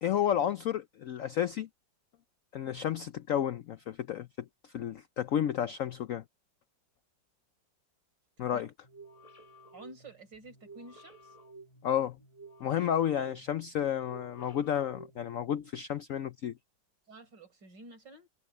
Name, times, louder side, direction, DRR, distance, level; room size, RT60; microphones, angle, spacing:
voice 1, 0.0-1.7 2.5-4.3 4.7-6.2 8.4-8.7 11.8-12.2 12.6-16.5, left 10 dB, 70° left, 0.8 m, -31 dB
sound 1, 8.8-15.7, right 2 dB, 20° left, 1.5 m, -54 dB
voice 2, 9.7-11.4 17.1-18.3, right 2 dB, 70° right, 5.1 m, -51 dB
omnidirectional pair, 2.0 m